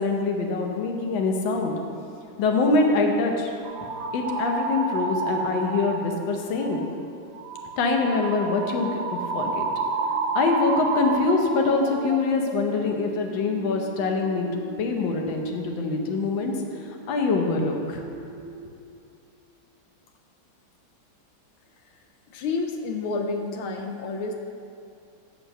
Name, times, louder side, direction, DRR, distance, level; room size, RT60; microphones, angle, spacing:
voice 1, 0.0-1.7 2.4-3.5 4.1-6.8 7.8-9.6 10.4-16.5 17.1-18.0, left 3 dB, 70° left, 2 dB, 1.6 m, -24 dB
sound 1, 3.6-6.2 6.6-6.9 7.3-17.7 17.9-18.6, right 4 dB, 75° right, 1.2 m, -32 dB
voice 2, 22.3-24.3, left 3 dB, 90° left, 3 dB, 1.5 m, -29 dB
8.9 x 4.6 x 6.7 m, 2.5 s
omnidirectional pair, 2.3 m